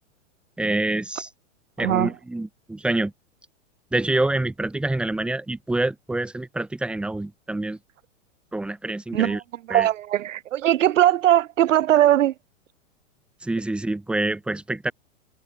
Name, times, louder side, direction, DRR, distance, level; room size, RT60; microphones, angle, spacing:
voice 1, 0.6-1.3 1.8-3.1 3.9-7.8 8.5-9.4 9.7-9.9 13.4-14.9, right 2 dB, 5° right, 0.6 m, -26 dB
voice 2, 1.8-2.1 9.1-12.3, right 12 dB, 75° right, 0.9 m, -20 dB
hypercardioid pair, 120°, 38 cm